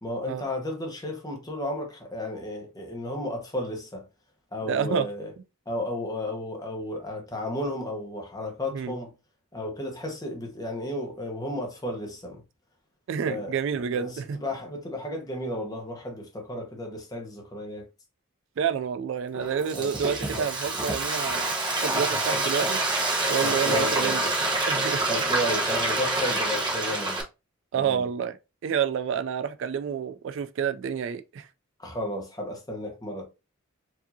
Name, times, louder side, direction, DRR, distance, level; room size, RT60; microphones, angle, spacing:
voice 1, 0.0-4.0 4.5-5.3 5.7-9.1 9.5-12.4 13.2-17.9 19.7-19.9 20.3-20.5 23.4-24.3 25.1-27.2 27.8-28.1 31.8-33.2, left 1 dB, 15° left, 1.0 m, -33 dB
voice 2, 4.7-5.1 8.7-8.9 13.1-14.4 18.6-21.5 21.8-22.8 23.3-24.2 24.7-25.0 27.7-28.4 28.6-31.5, right 7 dB, 60° right, 0.3 m, -29 dB
Frying (food), 19.3-27.2, right 2 dB, 20° right, 0.8 m, -27 dB
4.7 x 2.7 x 2.7 m
head